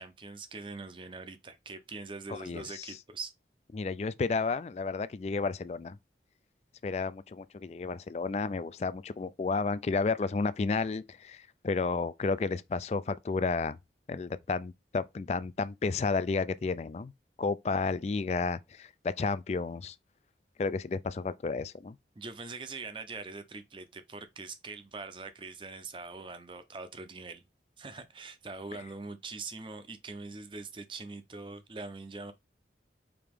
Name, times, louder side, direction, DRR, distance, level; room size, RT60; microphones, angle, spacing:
voice 1, 0.0-3.3 22.2-27.4 27.8-32.3, right 3 dB, 30° right, 0.6 m, -43 dB
voice 2, 2.3-3.0 3.7-6.0 6.8-13.8 14.1-17.1 17.4-20.0 20.6-21.9, left 4 dB, 35° left, 0.3 m, -32 dB
5.0 x 2.9 x 3.5 m
head